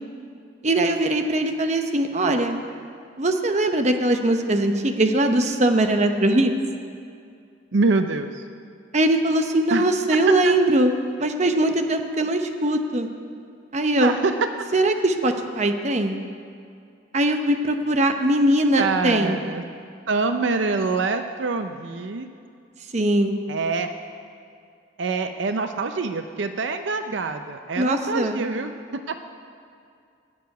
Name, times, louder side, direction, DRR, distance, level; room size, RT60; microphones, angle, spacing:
voice 1, 0.6-2.6 3.2-6.5 8.9-10.9 11.2-13.1 13.7-14.1 14.7-16.1 17.1-19.4 22.9-23.3 27.8-28.5, right 1 dB, 35° right, 5 dB, 0.8 m, -21 dB
voice 2, 7.7-8.4 9.7-9.8 10.4-10.6 14.0-14.5 18.8-19.6 20.1-22.3 23.5-23.9 25.0-29.2, right 3 dB, 70° right, 8 dB, 0.6 m, -25 dB
13.5 x 6.8 x 9.3 m, 2.4 s
head